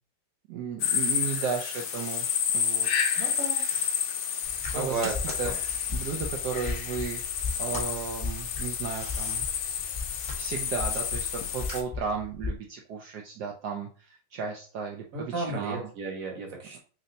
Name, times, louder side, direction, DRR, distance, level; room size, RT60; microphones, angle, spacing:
voice 1, 0.5-2.3 2.5-3.2 4.7-5.1 5.4-5.5 5.9-7.2 7.6-9.4 10.4-15.9, right 6 dB, 70° right, 1 dB, 1.1 m, -34 dB
sound 1, 0.8-11.8, left 8 dB, 75° left, 0.8 m, -30 dB
sound 2, 1.4-2.4 3.3-7.2 7.6-9.4 10.2-10.4 10.8-12.2, equal, 20° left, 1.1 m, -44 dB
voice 2, 3.1-3.6 4.7-5.1 5.4-5.6 15.1-16.8, right 3 dB, 50° right, 0 dB, 1.5 m, -33 dB
sound 3, 4.4-12.6, left 3 dB, 20° right, 1.2 m, -37 dB
3.2 x 2.8 x 3.9 m, 0.39 s
omnidirectional pair, 1.9 m